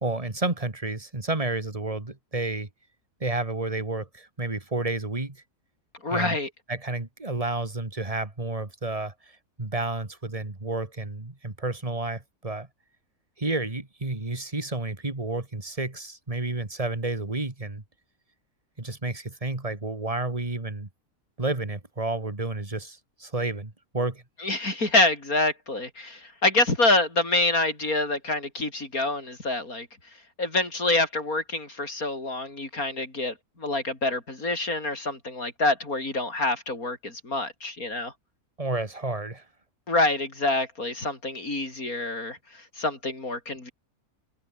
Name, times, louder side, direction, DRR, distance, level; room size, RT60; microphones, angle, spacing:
voice 1, 0.0-2.7 3.2-5.4 6.1-6.4 6.7-9.1 9.6-12.7 13.4-17.8 18.8-20.9 21.4-24.2 38.6-39.4, right 2 dB, 25° right, 2.5 m, -30 dB
voice 2, 6.0-6.5 24.4-29.9 30.4-38.1 39.9-43.7, left 2 dB, 75° left, 6.1 m, -26 dB
omnidirectional pair, 1.5 m